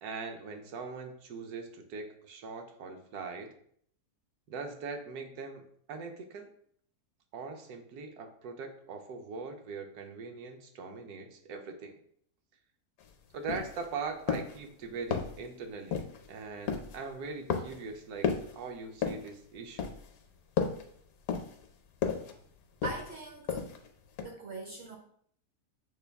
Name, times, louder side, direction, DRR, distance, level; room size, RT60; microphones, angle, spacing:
voice 1, 0.0-3.5 4.5-6.5 7.3-12.0 13.3-19.9, right 4 dB, 75° right, 4 dB, 1.1 m, -41 dB
sound 1, 13.0-13.1 13.5-13.9 14.3-14.6 15.1-15.5 15.9-16.3 16.7-17.0 17.5-17.9 18.2-18.6 19.0-19.3 19.8-20.2 20.6-20.9 21.3-21.7 22.0-22.3 22.8-23.2 23.5-23.9 24.2-24.3, left 6 dB, 70° left, 1.0 m, -33 dB
voice 2, 22.8-23.7 24.2-25.0, right 3 dB, 55° right, 1 dB, 0.7 m, -41 dB
6.6 x 2.3 x 3.4 m, 0.64 s
omnidirectional pair, 1.7 m